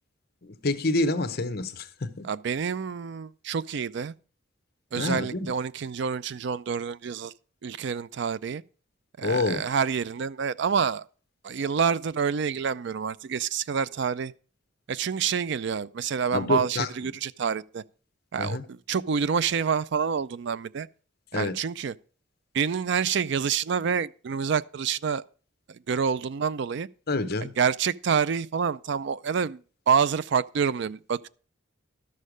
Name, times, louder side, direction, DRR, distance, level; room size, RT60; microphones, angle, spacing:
voice 1, 0.4-2.3 5.0-5.5 9.2-9.6 16.3-16.9 18.4-18.7 21.3-21.6 27.1-27.5, left 2 dB, 50° left, 0.8 m, -27 dB
voice 2, 2.2-4.1 4.9-7.3 7.6-8.6 9.2-11.1 11.4-14.3 14.9-17.8 18.3-20.9 21.3-21.9 22.5-25.2 25.7-26.9 27.6-29.6 29.9-31.3, right 6 dB, 55° right, 0.4 m, -27 dB
12.5 x 6.5 x 5.0 m
head